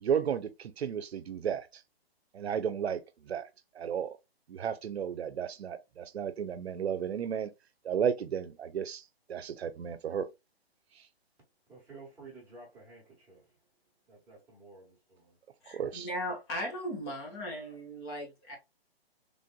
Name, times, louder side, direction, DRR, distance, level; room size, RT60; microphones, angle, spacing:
voice 1, 0.0-1.8 2.3-3.5 3.7-4.2 4.5-7.5 7.8-9.0 9.3-10.3 11.0-11.1 15.7-16.1, right 8 dB, 90° right, 0.6 m, -33 dB
voice 2, 11.7-13.5 14.1-15.4, right 3 dB, 5° right, 1.2 m, -52 dB
voice 3, 15.6-18.6, equal, 25° left, 1.1 m, -37 dB
3.3 x 2.6 x 2.2 m
hypercardioid pair, 160°, 31 cm